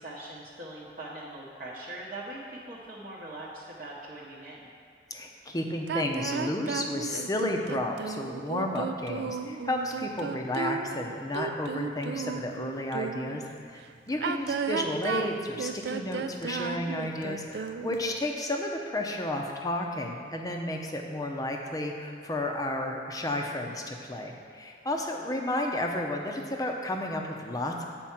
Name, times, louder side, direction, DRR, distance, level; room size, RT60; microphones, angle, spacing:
voice 1, 0.0-4.7 14.1-14.4 25.1-25.3, right 1 dB, 50° right, -6 dB, 0.8 m, -42 dB
voice 2, 5.1-27.8, left 1 dB, 20° left, 2 dB, 0.6 m, -32 dB
sound 1, 5.9-13.4 14.1-18.1, right 5 dB, 65° right, 0.3 m, -34 dB
7.5 x 4.4 x 5.8 m, 2.2 s
head